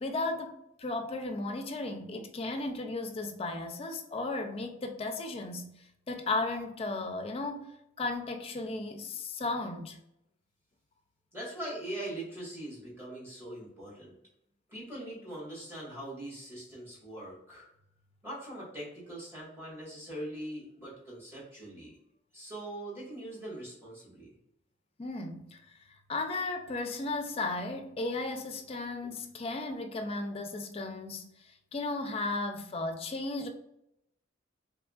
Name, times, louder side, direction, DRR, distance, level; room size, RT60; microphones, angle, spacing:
voice 1, 0.0-5.7 6.1-10.0 25.0-25.6 26.1-33.5, left 2 dB, 30° left, 0.4 m, -35 dB
voice 2, 11.3-14.1 14.7-17.7 18.2-21.9 22.3-24.3, right 1 dB, 10° right, 1.4 m, -42 dB
3.4 x 3.0 x 2.3 m
head